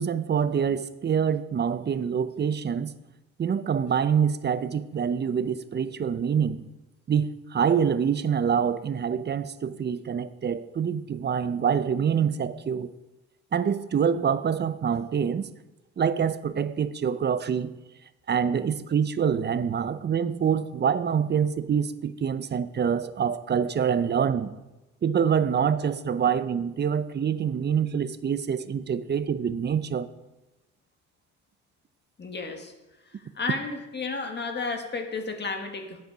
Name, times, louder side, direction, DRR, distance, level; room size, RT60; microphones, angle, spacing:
voice 1, 0.0-2.9 3.4-6.7 7.1-12.9 13.5-15.5 16.0-17.7 18.3-24.5 25.0-30.1, right 7 dB, 35° right, 0.6 m, -26 dB
voice 2, 32.2-32.7 33.0-36.0, left 4 dB, 35° left, 1.6 m, -32 dB
9.1 x 8.1 x 5.1 m
cardioid pair, 90°, 30 cm